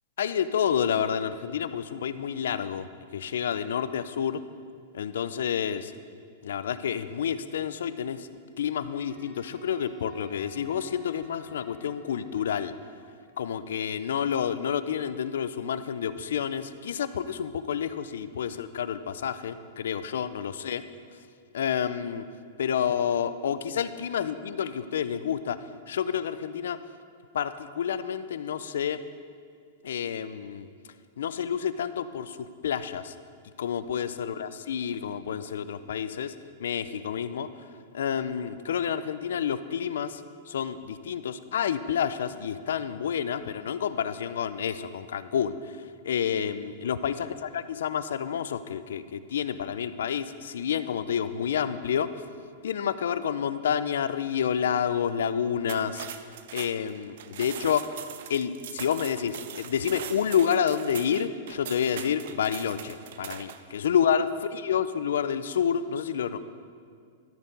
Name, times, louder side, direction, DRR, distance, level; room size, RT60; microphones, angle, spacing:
voice 1, 0.2-2.9 3.1-4.4 4.9-5.9 6.4-8.3 8.6-12.7 13.4-20.8 21.5-22.3 22.6-26.8 27.3-29.0 29.8-30.7 31.2-33.1 33.6-36.3 36.6-37.5 37.9-40.2 40.5-45.6 46.0-52.1 52.6-56.1 56.5-57.9 58.3-66.4, left 8 dB, 90° left, 13 dB, 0.4 m, -29 dB
Wind instrument woodwind instrument, 9.1-13.4, left 1 dB, 15° right, 2.5 m, -53 dB
sound 1, 55.6-63.7, right 9 dB, 65° right, 0.5 m, -41 dB
13.0 x 4.5 x 5.2 m, 2.2 s
supercardioid pair, 165°, 0 cm